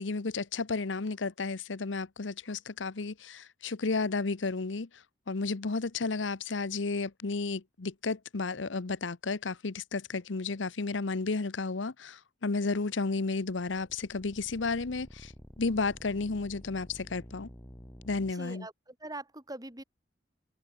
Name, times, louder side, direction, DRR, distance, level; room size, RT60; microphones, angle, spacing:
voice 1, 0.0-4.9 5.3-15.3 15.6-17.5 18.0-18.7, left 3 dB, 80° left, 0.9 m, -32 dB
sound 1, 13.5-18.3, equal, 15° left, 2.8 m, -50 dB
voice 2, 18.3-19.8, right 2 dB, 20° right, 5.1 m, -43 dB
head